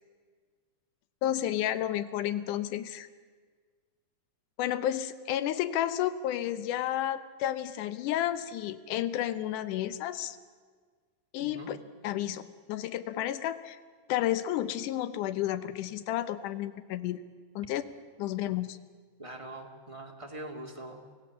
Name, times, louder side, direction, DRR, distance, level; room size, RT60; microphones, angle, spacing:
voice 1, 1.2-3.1 4.6-10.4 11.3-11.8 12.0-13.8 14.1-17.2 17.6-17.8 18.2-18.8, left 12 dB, 85° left, 13 dB, 2.4 m, -31 dB
voice 2, 11.4-11.7 19.2-21.2, right 1 dB, 15° right, 1 dB, 1.3 m, -43 dB
25.0 x 17.0 x 7.1 m, 1.6 s
omnidirectional pair, 3.5 m